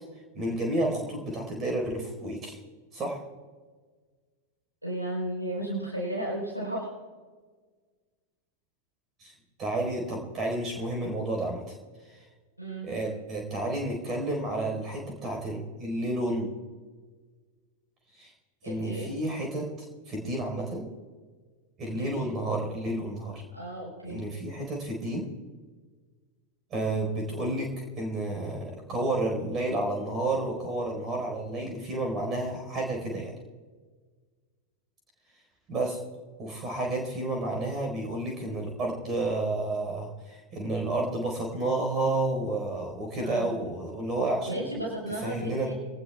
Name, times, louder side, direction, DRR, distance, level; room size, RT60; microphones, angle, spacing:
voice 1, 0.3-2.6 2.9-3.2 9.2-9.3 9.6-11.6 12.8-16.5 18.1-18.3 18.6-19.7 20.1-20.8 21.8-23.4 24.0-25.3 26.7-33.3 35.7-36.0 36.4-44.6 45.2-45.7, right 2 dB, 30° right, 2 dB, 4.5 m, -31 dB
voice 2, 4.8-6.9 12.6-12.9 18.6-19.1 21.9-22.1 23.5-24.2 43.2-43.5 44.5-45.7, right 1 dB, 90° right, -3 dB, 4.2 m, -34 dB
24.5 x 19.0 x 2.4 m, 1.5 s
figure-of-eight pair, 90°, 0 cm